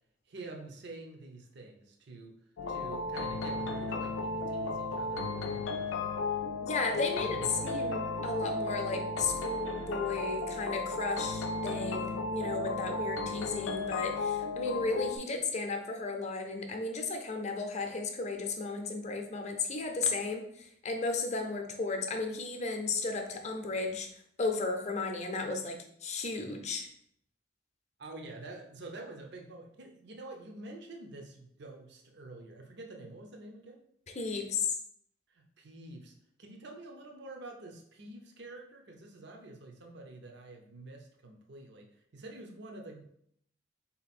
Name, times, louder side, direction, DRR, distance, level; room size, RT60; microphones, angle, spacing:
voice 1, 0.3-2.3 2.7-6.2 6.9-7.7 28.0-33.8 35.3-43.0, right 2 dB, 60° right, 2 dB, 0.6 m, -47 dB
sound 1, 2.6-15.2, left 3 dB, 85° left, 0.4 m, -34 dB
voice 2, 6.6-7.4 7.6-24.1 24.4-26.9 34.1-34.8, left 3 dB, 35° left, 4 dB, 0.6 m, -34 dB
3.9 x 2.9 x 4.2 m, 0.69 s
head